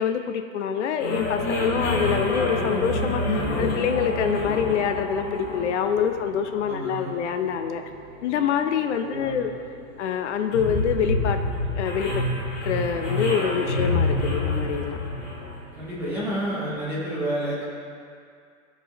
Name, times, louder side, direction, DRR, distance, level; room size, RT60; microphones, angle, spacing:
voice 1, 0.0-7.8 8.2-9.5 10.0-11.4 11.7-12.2 12.6-15.0, left 7 dB, 55° left, 7 dB, 0.6 m, -26 dB
sound 1, 1.0-16.4, left 2 dB, 25° left, 1.3 m, -28 dB
voice 2, 6.7-7.1 9.0-9.4 15.7-17.6, right 1 dB, 5° right, -9 dB, 0.6 m, -30 dB
13.0 x 4.6 x 2.9 m, 2.3 s
supercardioid pair, 175°, 41 cm